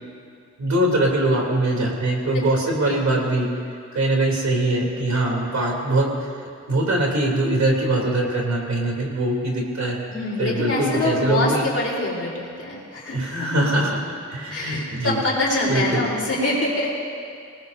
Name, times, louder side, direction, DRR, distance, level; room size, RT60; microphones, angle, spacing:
voice 1, 0.6-3.5 3.9-6.1 6.7-10.0 10.4-11.6 13.1-14.0 14.3-15.2 15.7-16.0, right 1 dB, 65° right, -2 dB, 3.3 m, -22 dB
voice 2, 10.1-13.5 14.5-16.9, left 2 dB, 55° left, -4 dB, 4.0 m, -25 dB
26.5 x 19.0 x 2.7 m, 2.3 s
wide cardioid pair, 175°, 30 cm